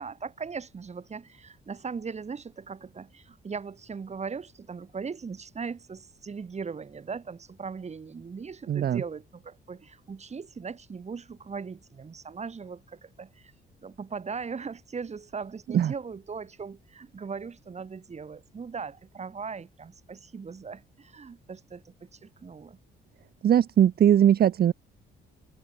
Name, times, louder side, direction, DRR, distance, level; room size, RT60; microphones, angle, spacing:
voice 1, 0.0-13.5 13.8-22.8, right 5 dB, 35° right, 2.0 m, -39 dB
voice 2, 8.7-9.0 15.7-15.9 23.4-24.7, right 10 dB, 50° right, 0.7 m, -20 dB
cardioid pair, 90°, 20 cm